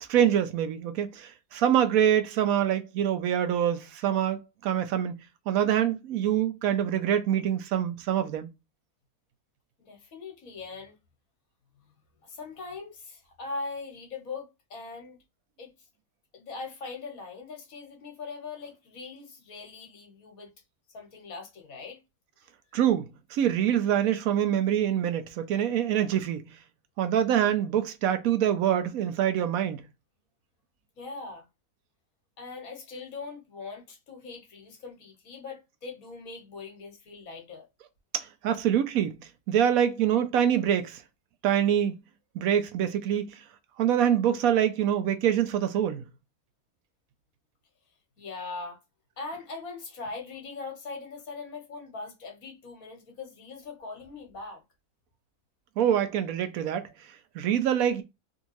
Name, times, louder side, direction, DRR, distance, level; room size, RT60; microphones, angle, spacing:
voice 1, 0.1-5.1 5.5-8.5 22.7-26.5 27.0-29.8 38.1-39.2 39.5-41.0 41.4-42.0 42.3-43.4 43.8-46.1 55.8-56.9 57.3-58.0, right 9 dB, 75° right, 1.0 m, -25 dB
voice 2, 9.8-11.0 12.2-15.2 15.6-15.7 16.3-20.5 20.9-22.0 30.9-31.4 32.4-37.7 48.2-48.8 49.2-54.6, left 4 dB, 70° left, 1.6 m, -41 dB
3.5 x 2.7 x 2.9 m
omnidirectional pair, 1.5 m